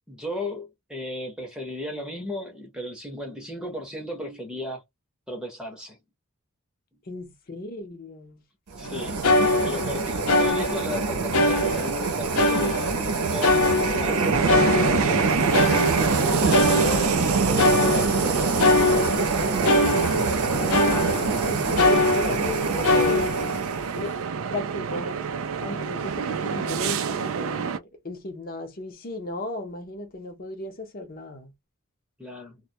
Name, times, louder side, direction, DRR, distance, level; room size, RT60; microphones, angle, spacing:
voice 1, 0.1-4.8 5.3-6.0 8.8-9.3 9.6-15.2 16.2-18.8 21.6-21.8 32.2-32.6, left 1 dB, 5° right, 0.7 m, -35 dB
voice 2, 7.1-8.4 16.7-17.4 20.3-23.3 23.9-24.1 24.5-25.2 25.6-31.5, left 1 dB, 40° left, 0.6 m, -35 dB
sound 1, 8.7-24.1, right 4 dB, 90° right, 0.7 m, -25 dB
sound 2, 8.8-8.9 9.2-11.0 11.3-12.1 12.4-15.2 15.5-21.4 21.8-22.5 22.8-23.6, left 2 dB, 85° left, 0.6 m, -23 dB
sound 3, 14.3-27.8, right 6 dB, 65° right, 0.4 m, -29 dB
2.1 x 2.1 x 2.7 m
head